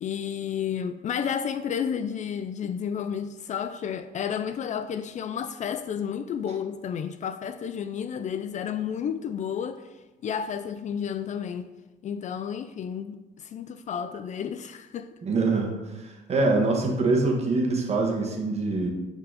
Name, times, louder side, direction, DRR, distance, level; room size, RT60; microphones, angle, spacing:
voice 1, 0.0-9.9 10.2-11.7 12.0-15.1, left 8 dB, 45° left, 0.4 m, -31 dB
voice 2, 15.2-18.9, right 3 dB, 40° right, 1.7 m, -24 dB
9.7 x 4.5 x 4.1 m
cardioid pair, 110°, 17 cm